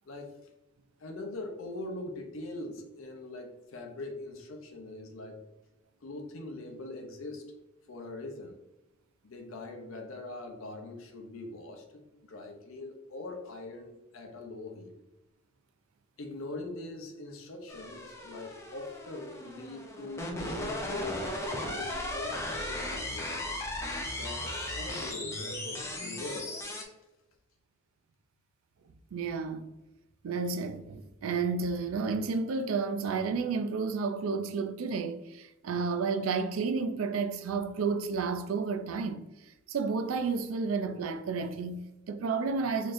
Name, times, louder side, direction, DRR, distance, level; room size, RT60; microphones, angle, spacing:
voice 1, 0.0-0.4 1.0-5.4 6.0-7.5 7.9-8.6 9.2-14.9 16.2-23.3 24.1-26.6, left 2 dB, 80° left, 0.6 m, -42 dB
sound 1, 17.7-26.8, left 1 dB, 15° left, 0.5 m, -37 dB
voice 2, 29.1-29.7 30.2-39.2 39.7-42.9, right 4 dB, 85° right, 0.4 m, -31 dB
3.9 x 3.1 x 2.5 m
head